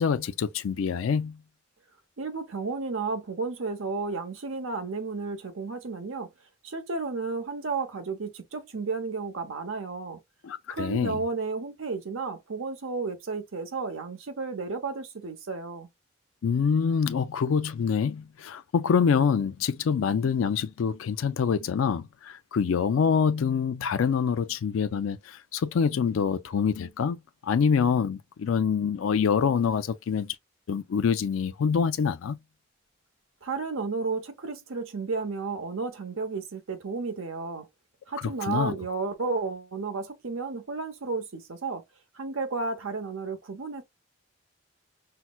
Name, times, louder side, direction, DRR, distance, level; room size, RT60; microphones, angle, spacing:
voice 1, 0.0-1.4 10.4-11.2 16.4-27.2 27.4-30.3 30.7-32.4 38.2-38.7, left 6 dB, 85° left, 0.4 m, -26 dB
voice 2, 2.2-6.3 6.6-10.2 10.7-15.9 33.4-37.7 38.1-41.8 42.1-43.8, right 4 dB, 90° right, 0.8 m, -32 dB
5.6 x 2.1 x 2.2 m
head